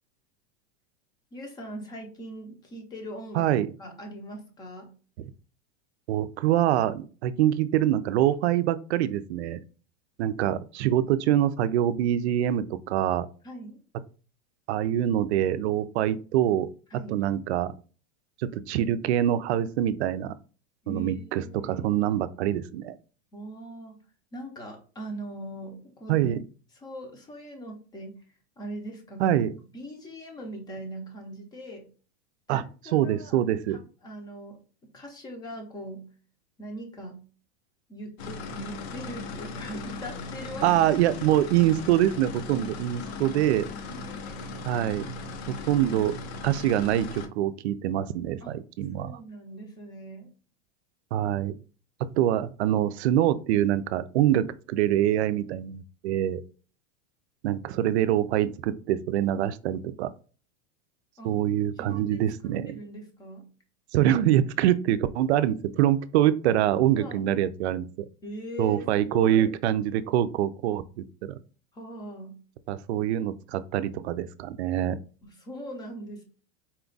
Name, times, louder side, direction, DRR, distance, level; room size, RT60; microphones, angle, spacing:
voice 1, 1.3-3.5 3.8-4.9 13.4-13.8 16.9-17.2 20.8-21.9 23.3-24.0 24.3-26.2 26.8-28.2 28.6-29.4 29.7-31.9 32.5-34.6 34.8-36.0 36.6-37.2 37.9-40.6 41.2-41.5 43.1-43.2 43.9-44.7 48.4-48.6 49.0-50.3 61.2-61.4 61.8-62.2 62.7-63.5 67.0-67.3 68.2-69.5 71.7-72.4 75.2-76.2, equal, 10° left, 3 dB, 0.6 m, -41 dB
voice 2, 3.3-3.7 6.1-9.6 10.2-13.3 14.7-16.7 17.1-17.7 18.4-20.3 20.9-23.0 26.1-26.4 29.2-29.5 32.5-32.6 32.9-33.8 40.6-43.7 44.7-45.1 45.5-46.2 46.4-49.2 51.1-51.6 52.0-56.4 57.4-60.1 61.2-62.8 63.9-67.9 68.6-71.3 72.7-75.0, right 12 dB, 85° right, 13 dB, 0.5 m, -25 dB
sound 1, 38.2-47.3, left 3 dB, 75° left, 0.8 m, -38 dB
4.3 x 2.3 x 3.8 m, 0.37 s
supercardioid pair, 170°, 32 cm